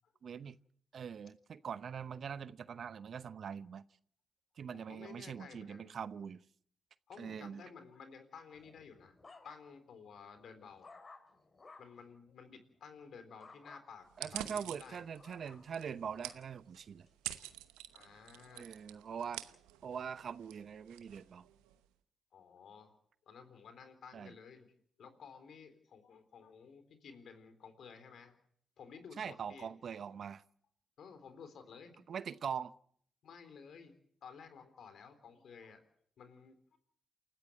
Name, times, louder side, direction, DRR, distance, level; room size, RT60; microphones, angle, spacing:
voice 1, 0.2-0.6 0.9-3.8 4.6-6.4 7.2-7.6 14.2-17.1 18.6-19.4 19.8-21.5 24.1-24.3 29.2-30.4 32.1-32.7, right 7 dB, 60° right, 16 dB, 0.8 m, -43 dB
voice 2, 4.7-6.0 7.1-9.2 9.4-10.9 11.6-15.0 17.9-18.7 22.3-23.0 23.3-24.7 25.0-28.4 28.8-29.7 31.0-32.0 33.2-34.0 34.2-35.8 36.2-36.8, left 6 dB, 65° left, 9 dB, 3.8 m, -54 dB
sound 1, 8.5-9.9 10.4-12.0 13.4-13.8 14.5-16.4 17.1-17.4, left 3 dB, 40° left, 4.1 m, -58 dB
sound 2, 14.1-21.8, right 15 dB, 85° right, 0.9 m, -48 dB
28.5 x 14.0 x 7.7 m, 0.64 s
hypercardioid pair, 45°, 0 cm